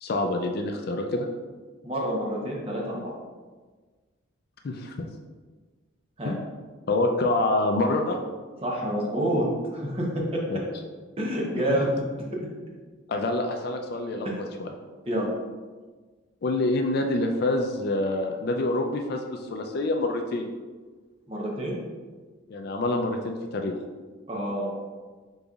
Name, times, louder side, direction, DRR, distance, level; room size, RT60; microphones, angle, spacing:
voice 1, 0.0-1.3 4.6-4.9 6.2-6.5 6.9-8.2 10.5-10.6 11.7-11.8 13.1-14.7 16.4-20.5 22.5-23.8, left 2 dB, 50° left, 3 dB, 0.4 m, -26 dB
voice 2, 1.8-3.2 6.2-6.3 8.6-9.5 9.7-10.4 11.2-11.9 12.3-12.4 15.1-15.3 21.3-21.8 24.3-24.7, right 1 dB, 25° right, -3 dB, 0.8 m, -28 dB
5.3 x 3.9 x 2.4 m, 1.4 s
head